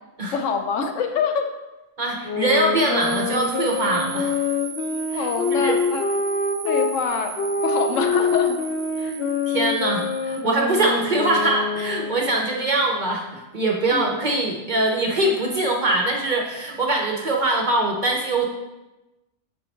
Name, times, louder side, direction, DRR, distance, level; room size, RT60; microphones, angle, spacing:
voice 1, 0.3-1.5 5.1-6.0 6.6-8.6 9.0-9.1 13.9-14.1, left 5 dB, 80° left, 5 dB, 1.1 m, -25 dB
voice 2, 2.0-4.4 5.1-5.8 9.0-9.1 9.5-18.5, right 2 dB, 50° right, 0 dB, 0.6 m, -23 dB
sound 1, 2.2-6.9 7.4-12.3, left 4 dB, 60° left, 0.8 m, -25 dB
sound 2, 3.0-10.4, right 8 dB, 75° right, 0.9 m, -37 dB
6.3 x 3.9 x 4.4 m, 1.0 s
omnidirectional pair, 1.3 m